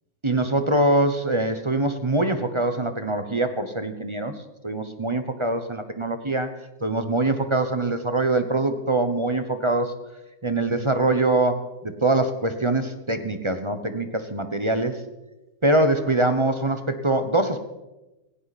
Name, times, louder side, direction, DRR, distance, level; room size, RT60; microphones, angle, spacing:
voice 1, 0.2-4.3 4.6-6.5 6.8-9.9 10.4-15.0 15.6-17.6, right 2 dB, 25° right, 8 dB, 0.9 m, -23 dB
18.5 x 16.5 x 4.2 m, 1.0 s
omnidirectional pair, 1.6 m